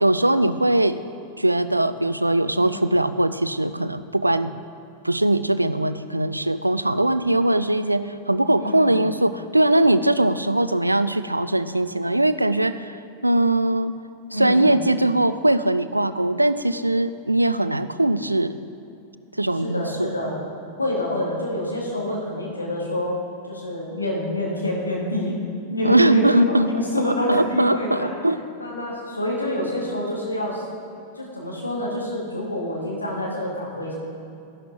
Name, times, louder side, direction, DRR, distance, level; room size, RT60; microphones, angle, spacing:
voice 1, 0.0-1.0 1.4-4.5 5.0-13.9 14.3-18.5 19.4-20.1 25.8-26.7 27.0-28.4, right 1 dB, 85° right, 13 dB, 0.3 m, -21 dB
voice 2, 2.6-2.9 8.5-8.9 14.3-14.8 19.6-20.4 20.8-25.4 25.7-28.1 28.6-30.6 31.1-33.9, left 1 dB, 80° left, -3 dB, 2.0 m, -27 dB
12.5 x 11.0 x 2.9 m, 2.6 s
figure-of-eight pair, 90°, 0 cm